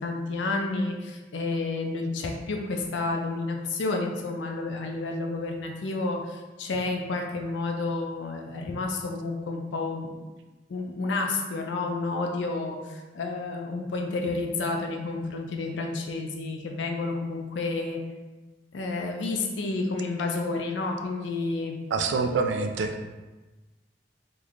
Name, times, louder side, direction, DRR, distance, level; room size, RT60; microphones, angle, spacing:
voice 1, 0.0-10.1 10.7-18.0 18.7-21.8, left 3 dB, 75° left, 2 dB, 0.4 m, -30 dB
voice 2, 21.9-23.1, right 4 dB, 70° right, 5 dB, 0.3 m, -26 dB
3.1 x 2.1 x 3.6 m, 1.2 s
head